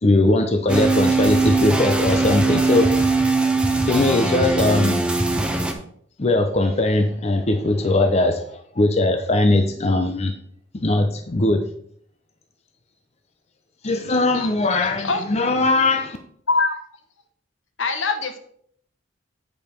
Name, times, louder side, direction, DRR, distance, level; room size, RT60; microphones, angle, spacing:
voice 1, 0.0-2.9 3.9-5.1 6.2-10.3 10.7-11.6 13.8-16.2, left 2 dB, 35° left, 5 dB, 0.6 m, -20 dB
sound 1, 0.7-5.7, right 3 dB, 5° right, 0.8 m, -20 dB
voice 2, 14.1-14.5 15.0-15.2 16.5-16.8 17.8-18.4, left 3 dB, 75° left, 6 dB, 1.1 m, -23 dB
8.8 x 5.3 x 4.4 m, 0.64 s
head